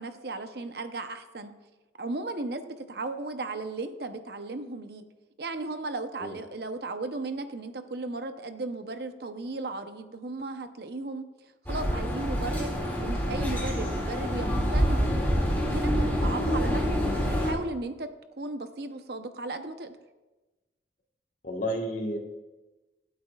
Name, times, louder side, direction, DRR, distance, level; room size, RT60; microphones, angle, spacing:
voice 1, 0.0-1.5 2.0-5.0 5.4-11.2 11.7-12.7 13.0-15.3 15.6-16.8 17.1-18.1 18.4-20.0, right 2 dB, 60° right, 8 dB, 0.8 m, -36 dB
sound 1, 11.7-17.5, equal, 10° left, 2.3 m, -27 dB
voice 2, 21.4-22.2, equal, 45° left, 2 dB, 1.4 m, -31 dB
25.0 x 8.5 x 2.4 m, 1.1 s
head